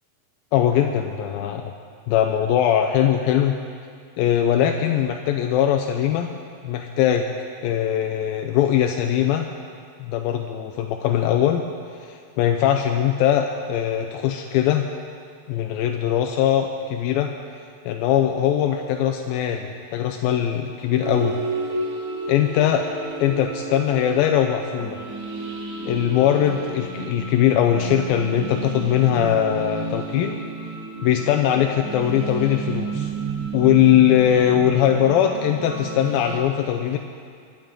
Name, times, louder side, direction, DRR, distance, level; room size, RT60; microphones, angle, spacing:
voice 1, 0.5-1.6 2.1-3.6 4.2-6.3 6.6-7.3 7.6-9.5 10.0-11.6 12.0-14.9 15.5-17.3 17.9-21.4 22.3-22.9 23.2-25.0 25.8-30.4 31.0-33.1 33.5-37.0, left 10 dB, 85° left, 4 dB, 2.4 m, -21 dB
sound 1, 21.0-36.4, right 4 dB, 50° right, 1.7 m, -31 dB
23.5 x 10.5 x 3.8 m, 2.2 s
omnidirectional pair, 4.3 m